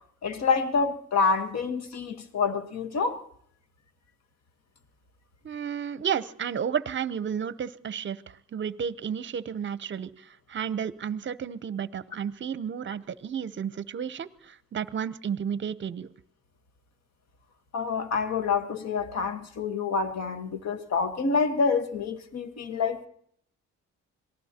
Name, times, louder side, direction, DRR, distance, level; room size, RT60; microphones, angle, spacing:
voice 1, 0.2-3.2 17.7-23.1, left 5 dB, 60° left, 1.5 m, -27 dB
voice 2, 5.4-16.1, right 8 dB, 40° right, 0.7 m, -32 dB
26.5 x 18.5 x 2.9 m
cardioid pair, 90°, 30 cm